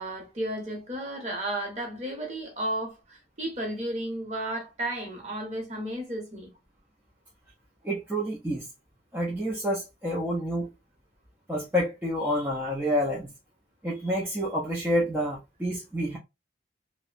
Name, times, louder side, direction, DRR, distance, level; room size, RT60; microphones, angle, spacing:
voice 1, 0.0-6.5, right 1 dB, 35° right, 0.9 m, -33 dB
voice 2, 7.8-8.7 9.1-10.7 11.5-13.3 13.8-16.2, equal, 10° right, 0.4 m, -28 dB
2.6 x 2.1 x 2.4 m
head